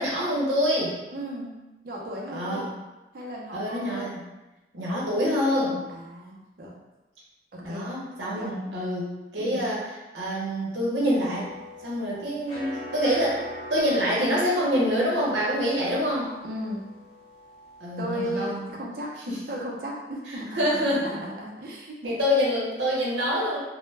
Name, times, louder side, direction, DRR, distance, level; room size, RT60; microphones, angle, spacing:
voice 1, 0.0-1.0 2.3-2.7 3.5-4.2 4.7-5.8 7.6-9.9 10.1-11.5 11.8-13.4 13.7-16.3 17.8-18.8 19.3-19.4 20.3-21.1 22.0-23.6, equal, 80° right, -5 dB, 0.8 m, -26 dB
voice 2, 1.1-2.7 3.1-4.2 5.9-6.7 7.5-7.8 8.3-8.6 9.4-9.7 16.4-16.9 18.0-19.1 19.5-22.2, equal, 50° right, -3 dB, 0.5 m, -35 dB
sound 1, 11.0-18.4, left 2 dB, 30° left, 0.5 m, -42 dB
2.1 x 2.0 x 3.1 m, 1.1 s
head